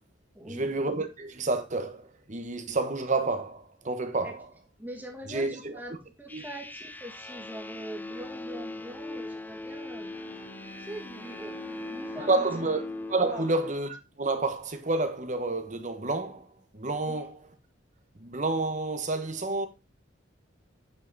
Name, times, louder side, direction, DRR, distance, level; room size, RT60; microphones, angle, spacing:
voice 1, 0.4-4.5 5.3-5.7 6.3-6.4 12.2-12.8 13.1-16.5 16.7-17.4 18.2-19.7, right 2 dB, 40° right, 1.3 m, -29 dB
voice 2, 4.8-10.1 10.8-12.5 13.2-13.4 17.0-17.3, right 1 dB, 10° right, 2.1 m, -42 dB
sound 1, 6.3-13.7, left 2 dB, 10° left, 0.3 m, -40 dB
Bowed string instrument, 9.9-14.8, equal, 40° left, 1.7 m, -49 dB
8.8 x 5.8 x 4.0 m
head